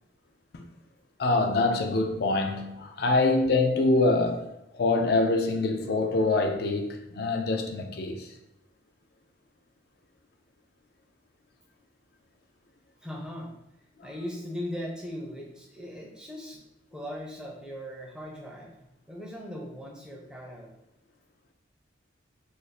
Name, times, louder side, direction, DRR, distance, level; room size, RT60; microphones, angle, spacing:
voice 1, 1.2-4.4 4.7-8.3, left 2 dB, 55° left, 0.4 m, -25 dB
voice 2, 13.0-13.5 14.0-16.6 16.9-20.7, equal, 5° right, 0.5 m, -39 dB
2.5 x 2.4 x 4.0 m
head